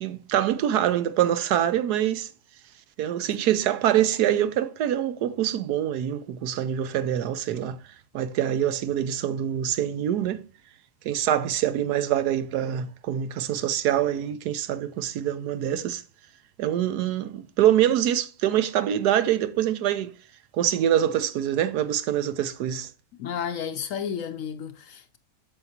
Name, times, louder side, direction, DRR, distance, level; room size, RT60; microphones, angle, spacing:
voice 1, 0.0-2.3 3.0-7.8 8.1-10.4 11.0-16.0 16.6-20.1 20.5-22.9, right 11 dB, 80° right, 1.2 m, -25 dB
voice 2, 23.2-25.2, left 8 dB, 70° left, 0.8 m, -32 dB
8.0 x 7.1 x 2.8 m
omnidirectional pair, 1.7 m